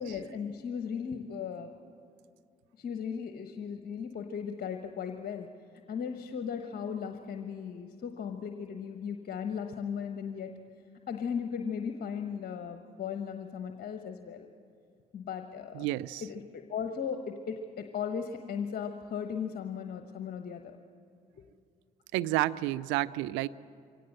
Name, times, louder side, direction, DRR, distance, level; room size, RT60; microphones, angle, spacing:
voice 1, 0.0-1.7 2.8-5.5 5.9-10.5 11.1-14.5 15.1-15.9 16.2-20.8, left 7 dB, 45° left, 6 dB, 1.1 m, -37 dB
voice 2, 15.7-16.2 22.1-23.5, right 17 dB, 65° right, 16 dB, 0.5 m, -30 dB
24.0 x 17.5 x 7.7 m, 2.3 s
figure-of-eight pair, 45°, 21 cm